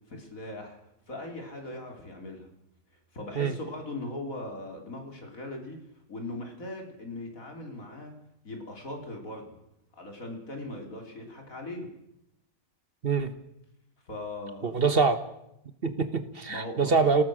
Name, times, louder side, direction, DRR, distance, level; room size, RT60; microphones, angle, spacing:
voice 1, 0.1-0.8 1.1-2.5 3.1-5.8 6.1-8.1 8.4-9.6 9.9-11.9 14.1-15.0 16.5-17.0, left 2 dB, 50° left, 3 dB, 4.0 m, -39 dB
voice 2, 14.6-15.2 15.8-17.2, right 4 dB, 35° right, 11 dB, 1.3 m, -24 dB
27.5 x 18.0 x 6.3 m, 0.82 s
omnidirectional pair, 1.9 m